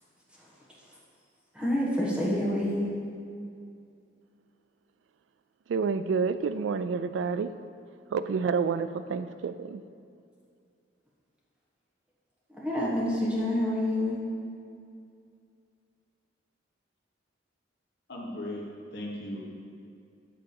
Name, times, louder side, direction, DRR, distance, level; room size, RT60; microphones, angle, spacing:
voice 1, 0.3-1.0 1.5-2.9 12.5-14.2, left 1 dB, 5° right, -6 dB, 1.6 m, -28 dB
voice 2, 5.7-7.5 8.1-9.8, right 5 dB, 80° right, 13 dB, 0.3 m, -29 dB
voice 3, 18.1-18.6 18.9-19.4, left 1 dB, 65° left, -3 dB, 1.5 m, -36 dB
8.6 x 3.8 x 6.9 m, 2.4 s
head